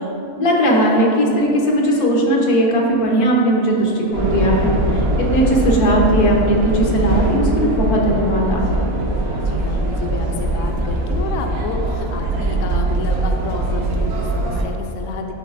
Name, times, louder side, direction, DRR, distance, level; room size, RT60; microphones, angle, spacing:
voice 1, 0.4-8.9, equal, 85° left, -2 dB, 1.5 m, -18 dB
sound 1, 4.1-14.6, right 2 dB, 75° right, 1.2 m, -21 dB
voice 2, 9.4-15.3, left 3 dB, 65° left, 2 dB, 0.8 m, -29 dB
12.0 x 4.0 x 2.5 m, 2.7 s
omnidirectional pair, 1.5 m